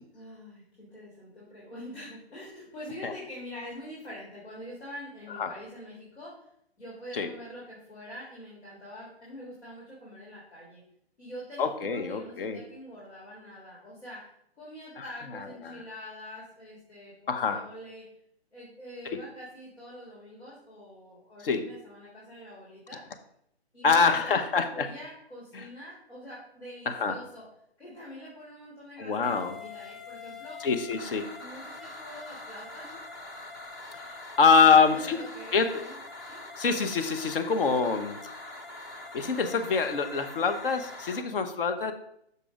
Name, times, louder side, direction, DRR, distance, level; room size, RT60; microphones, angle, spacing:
voice 1, 0.1-6.5 6.8-10.8 11.2-14.3 14.6-18.1 18.5-23.0 23.7-27.5 27.8-30.7 31.4-32.9 34.6-36.0 36.3-36.4, equal, 85° left, -6 dB, 3.2 m, -45 dB
voice 2, 11.6-12.6 15.7-15.8 17.3-17.6 19.1-19.2 21.4-21.7 23.8-24.9 25.5-25.6 26.9-27.2 29.0-29.5 30.6-31.3 34.4-35.2 35.5-35.8 36.6-38.2 39.1-41.9, left 5 dB, 55° left, 8 dB, 1.0 m, -25 dB
sound 1, 29.2-41.2, left 2 dB, 20° left, 0.5 m, -43 dB
6.9 x 4.9 x 5.0 m, 0.72 s
figure-of-eight pair, 140°, 32 cm